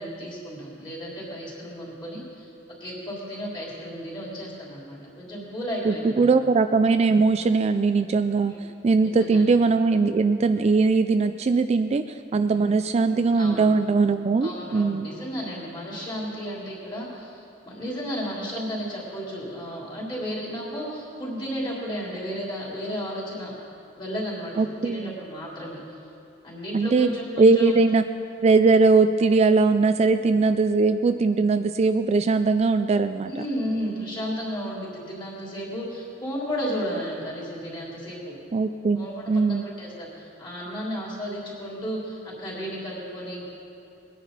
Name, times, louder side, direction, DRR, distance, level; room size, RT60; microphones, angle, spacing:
voice 1, 0.0-2.5 2.8-6.3 8.5-8.6 9.0-9.4 12.5-12.7 13.1-13.7 14.4-23.5 24.0-24.5 24.8-26.0 26.4-27.7 33.2-38.4 39.0-43.4, equal, 25° left, -5 dB, 3.5 m, -33 dB
voice 2, 5.8-15.1 24.6-25.2 26.7-27.1 27.4-28.0 28.4-33.4 38.5-39.6, right 4 dB, 35° right, 9 dB, 0.3 m, -20 dB
20.5 x 10.0 x 4.0 m, 2.7 s
head